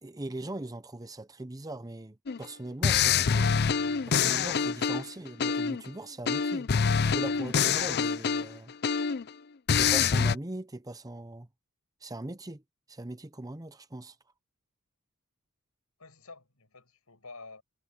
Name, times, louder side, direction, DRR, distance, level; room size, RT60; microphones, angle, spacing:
voice 1, 0.0-3.5 4.0-6.7 7.1-8.7 9.7-11.5 12.0-12.6 12.9-14.2, right 2 dB, 15° right, 0.8 m, -40 dB
sound 1, 2.3-2.4 2.8-5.9 6.3-9.3 9.7-10.4, left 6 dB, 50° left, 0.5 m, -26 dB
voice 2, 16.0-17.6, left 3 dB, 80° left, 6.5 m, -50 dB
head